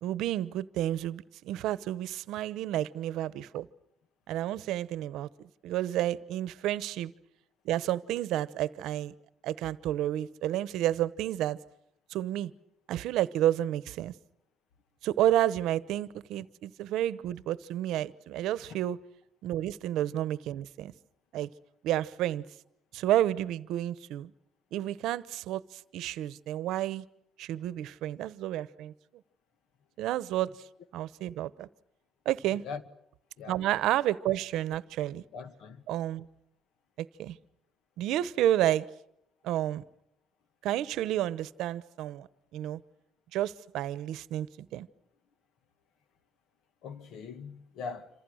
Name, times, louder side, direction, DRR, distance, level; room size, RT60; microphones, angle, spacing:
voice 1, 0.0-3.7 4.3-7.1 7.6-9.1 9.4-11.6 12.1-12.5 12.9-14.1 15.0-19.0 19.4-20.9 21.3-21.5 21.8-22.4 22.9-24.3 24.7-27.0 27.4-28.9 30.0-30.5 30.9-31.7 32.2-32.6 33.5-35.2 35.9-36.3 37.0-37.4 38.0-38.9 39.4-39.8 40.6-42.3 42.5-42.8 43.3-44.5 44.7-44.9, right 13 dB, 75° right, 0.9 m, -30 dB
voice 2, 32.5-32.8 33.4-33.6 35.3-35.9 46.8-48.1, left 5 dB, 55° left, 1.7 m, -41 dB
27.5 x 26.5 x 6.4 m
cardioid pair, 165°, 0 cm